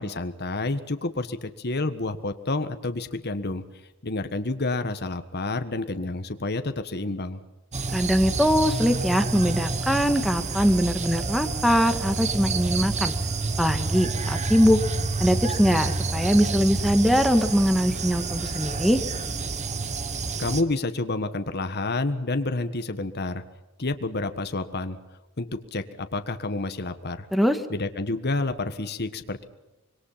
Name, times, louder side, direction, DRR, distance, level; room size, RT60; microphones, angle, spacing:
voice 1, 0.0-3.6 4.0-7.4 20.4-23.4 23.8-25.0 25.4-27.3 27.7-29.4, left 2 dB, 50° left, 9 dB, 1.5 m, -29 dB
sound 1, 7.7-20.6, right 3 dB, 35° right, 1.4 m, -28 dB
voice 2, 7.9-13.1 13.6-14.8 15.2-19.0 27.3-27.6, equal, ahead, 8 dB, 1.8 m, -22 dB
25.5 x 22.0 x 5.8 m, 1.0 s
head